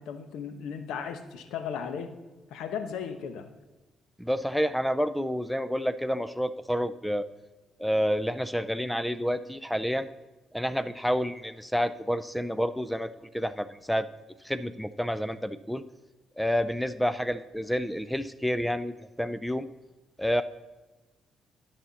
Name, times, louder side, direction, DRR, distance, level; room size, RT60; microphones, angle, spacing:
voice 1, 0.0-2.1 2.5-3.5, left 7 dB, 85° left, 8 dB, 1.0 m, -36 dB
voice 2, 4.2-7.3 7.8-10.1 10.5-14.1 14.4-15.8 16.4-18.9 19.2-19.7 20.2-20.4, equal, ahead, 13 dB, 0.4 m, -29 dB
12.5 x 5.7 x 4.1 m, 1.1 s
cardioid pair, 90°, 0 cm